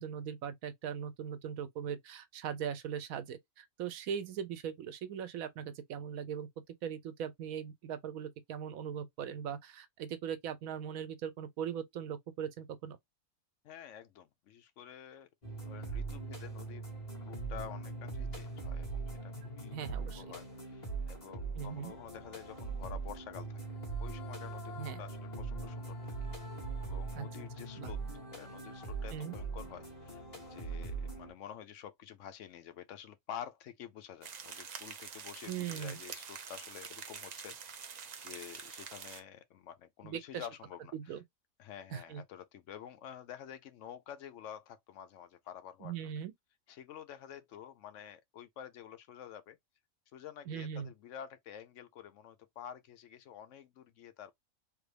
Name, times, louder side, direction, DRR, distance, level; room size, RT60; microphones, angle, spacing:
voice 1, 0.0-6.5 6.8-13.0 19.7-20.3 21.6-21.9 24.8-25.0 27.1-27.3 27.8-27.9 29.1-29.3 35.5-36.0 40.0-40.5 40.9-41.2 41.9-42.2 45.8-46.3 50.5-50.9, right 8 dB, 85° right, 1.1 m, -40 dB
voice 2, 13.6-16.9 17.2-26.3 26.8-28.0 28.3-30.2 30.5-37.6 38.2-41.2 41.6-46.0 46.7-49.6 50.1-54.3, left 9 dB, 70° left, 0.9 m, -49 dB
sound 1, 15.4-31.3, right 3 dB, 30° left, 1.6 m, -41 dB
sound 2, 34.2-39.2, right 6 dB, 60° right, 0.4 m, -46 dB
3.3 x 2.5 x 3.2 m
omnidirectional pair, 1.4 m